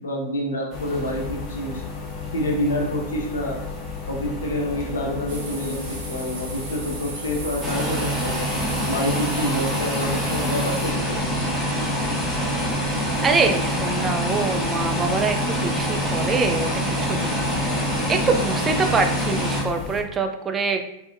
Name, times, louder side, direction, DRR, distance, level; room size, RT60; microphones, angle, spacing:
voice 1, 0.0-1.8 2.3-3.6 4.1-8.5 8.9-11.2, left 1 dB, 80° left, 0 dB, 0.6 m, -27 dB
sound 1, 0.7-20.0, left 4 dB, 30° left, 0.8 m, -34 dB
sound 2, 5.3-10.9, right 3 dB, 65° right, 0.7 m, -36 dB
sound 3, 7.6-19.6, equal, ahead, 1.0 m, -25 dB
voice 2, 13.2-17.4 18.1-20.8, right 4 dB, 25° right, 6 dB, 0.3 m, -24 dB
2.7 x 2.1 x 2.4 m, 0.81 s
figure-of-eight pair, 95°, 0 cm